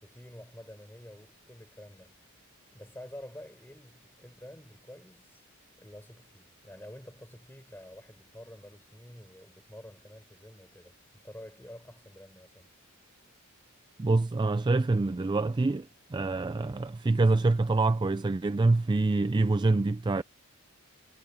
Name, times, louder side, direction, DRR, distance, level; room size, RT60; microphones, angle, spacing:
voice 1, 0.0-2.2 2.7-5.4 5.8-12.7, left 1 dB, 10° left, 4.7 m, -49 dB
voice 2, 14.0-20.2, right 3 dB, 20° right, 0.3 m, -26 dB
head